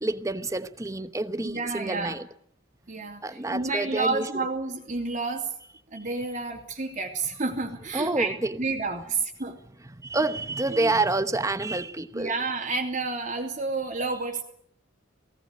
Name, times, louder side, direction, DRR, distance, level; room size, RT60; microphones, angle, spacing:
voice 1, 0.0-2.3 3.2-4.5 5.9-6.0 7.9-8.6 9.8-12.3, right 2 dB, 15° right, 1.0 m, -28 dB
voice 2, 1.4-2.2 2.9-5.5 5.9-8.3 8.6-9.5 10.8-10.9 12.1-14.4, right 3 dB, 40° right, 3.1 m, -30 dB
19.5 x 18.0 x 9.5 m
head